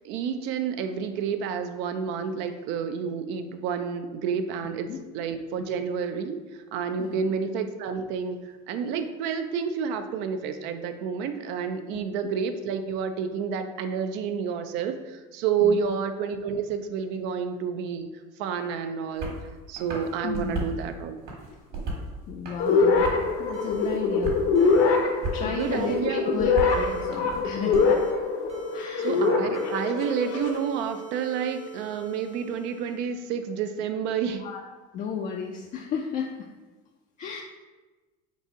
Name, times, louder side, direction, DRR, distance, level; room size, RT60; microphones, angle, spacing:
voice 1, 0.0-6.4 6.7-18.1 18.4-19.3 19.7-21.2 25.4-26.4 29.0-34.4, right 6 dB, 65° right, 8 dB, 0.4 m, -29 dB
sound 1, 19.2-19.4 19.8-20.8 21.2-22.1 22.4-23.3 23.7-24.4 24.7-25.4 25.8-27.8, right 2 dB, 50° right, 1.4 m, -35 dB
voice 2, 20.2-20.7 22.3-23.1 23.4-24.3 25.3-28.2 28.7-29.2 34.3-34.6 34.9-36.5 37.2-37.4, left 6 dB, 40° left, 1 dB, 0.4 m, -34 dB
sound 2, 22.6-30.6, left 4 dB, 65° left, 0.8 m, -24 dB
sound 3, 23.5-23.9 24.5-24.8 25.6-25.9 26.7-27.0 27.7-28.1 28.5-29.3 29.5-33.3, right 7 dB, 30° right, 0.7 m, -41 dB
4.0 x 2.6 x 4.7 m, 1.2 s
supercardioid pair, 120°, 20 cm